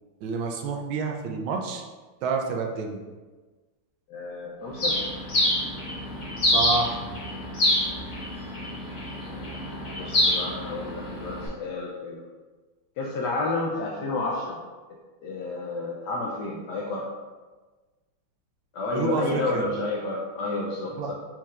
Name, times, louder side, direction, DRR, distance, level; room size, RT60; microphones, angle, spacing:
voice 1, 0.2-1.8 2.2-3.0 6.5-7.0 18.9-19.6 20.9-21.1, right 4 dB, 75° right, 2 dB, 1.3 m, -28 dB
voice 2, 4.1-5.0 10.0-12.2 13.0-14.6 15.2-17.1 18.7-21.1, left 2 dB, 75° left, -2 dB, 1.0 m, -30 dB
Bird, 4.8-11.5, left 1 dB, 50° left, 1.8 m, -27 dB
4.5 x 4.4 x 2.4 m, 1.3 s
omnidirectional pair, 2.3 m